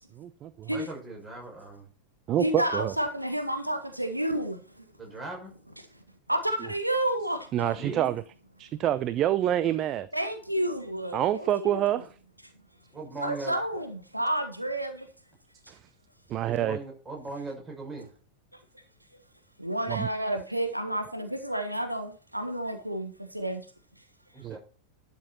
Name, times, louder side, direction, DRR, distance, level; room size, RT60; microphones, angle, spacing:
voice 1, 0.1-0.7 2.3-2.9 7.5-8.2 8.6-10.1 11.1-12.1 15.7-15.8 16.3-16.8 19.9-20.1 24.4-24.6, right 12 dB, 35° right, 0.6 m, -27 dB
voice 2, 0.7-1.9 5.0-5.5 7.8-8.1 12.9-13.8 16.4-18.1 24.3-24.6, right 2 dB, 15° right, 6.2 m, -39 dB
voice 3, 2.4-4.8 6.3-7.8 10.1-11.9 13.2-15.1 19.6-23.6, right 1 dB, 90° right, 1.6 m, -30 dB
12.0 x 7.1 x 4.3 m
figure-of-eight pair, 90°, 0 cm